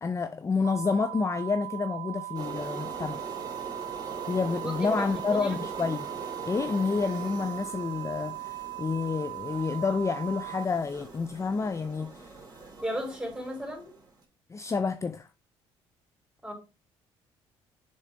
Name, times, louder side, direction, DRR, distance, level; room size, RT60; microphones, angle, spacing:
voice 1, 0.0-3.2 4.3-6.1 6.5-12.3 14.5-15.3, left 4 dB, 25° left, 0.5 m, -29 dB
sound 1, 0.6-10.7, right 21 dB, 80° right, 0.4 m, -39 dB
sound 2, 2.3-14.1, right 3 dB, 30° right, 3.2 m, -42 dB
voice 2, 4.6-5.5 12.8-13.9 16.4-16.5, equal, 5° right, 3.9 m, -35 dB
7.3 x 3.8 x 3.6 m
supercardioid pair, 65°, 12 cm